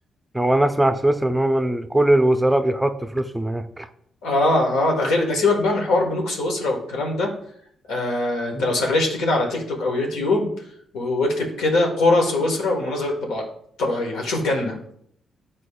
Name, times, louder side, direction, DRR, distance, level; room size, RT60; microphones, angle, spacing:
voice 1, 0.3-3.9 8.5-8.7, right 1 dB, 10° right, 8 dB, 0.5 m, -20 dB
voice 2, 4.2-7.3 7.9-10.5 10.9-13.4 13.8-14.8, left 2 dB, 90° left, 0 dB, 1.4 m, -22 dB
9.7 x 4.2 x 2.3 m, 0.68 s
cardioid pair, 70°, 0 cm